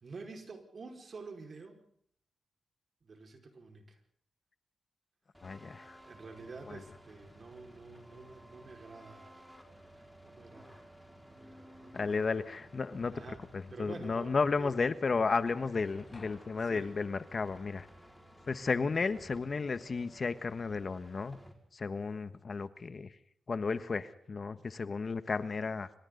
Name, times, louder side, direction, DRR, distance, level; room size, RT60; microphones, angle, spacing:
voice 1, 0.0-1.9 3.0-4.0 6.0-9.6 9.9-11.0 11.3-12.3 13.1-13.4 13.7-14.7 15.8-15.9 16.6-16.9, right 4 dB, 55° right, 4 dB, 5.1 m, -49 dB
sound 1, 5.3-21.5, equal, ahead, 5.1 m, -55 dB
voice 2, 5.4-6.0 6.7-6.8 11.9-17.9 18.5-21.4 21.7-23.2 23.5-25.9, left 4 dB, 50° left, 12 dB, 1.4 m, -33 dB
sound 2, 15.6-19.4, left 2 dB, 35° left, 7.1 m, -62 dB
26.5 x 25.5 x 4.0 m, 0.63 s
cardioid pair, 60°, 0 cm